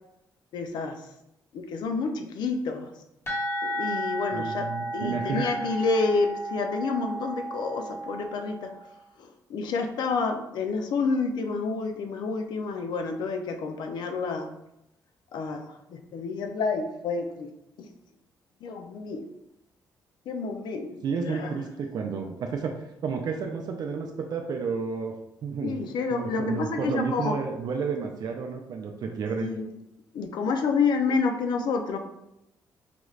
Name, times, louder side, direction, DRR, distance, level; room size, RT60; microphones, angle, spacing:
voice 1, 0.5-1.0 1.5-2.9 3.6-8.8 9.2-14.5 15.3-17.5 17.8-17.9 18.6-19.2 20.3-21.5 25.6-27.4 29.4-29.7 30.1-32.0, left 4 dB, 75° left, 5 dB, 0.5 m, -29 dB
sound 1, 3.3-8.9, right 1 dB, 35° left, 1.4 m, -33 dB
voice 2, 4.3-5.4 21.0-22.8 23.0-25.1 25.4-25.8 26.1-29.5, right 5 dB, 65° right, 3 dB, 0.5 m, -31 dB
5.0 x 2.4 x 3.2 m, 0.83 s
cardioid pair, 125°, 7 cm